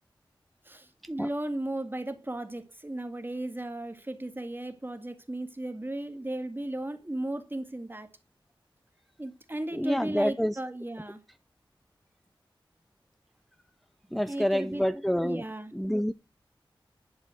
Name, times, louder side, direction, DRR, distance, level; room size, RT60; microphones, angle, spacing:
voice 1, 0.7-8.1 9.2-11.2 14.2-14.9 15.2-15.7, right 1 dB, 25° right, 2.0 m, -35 dB
voice 2, 9.7-10.6 14.1-15.4 15.7-16.1, equal, ahead, 0.6 m, -27 dB
11.0 x 5.5 x 6.1 m
wide cardioid pair, 55°, 9 cm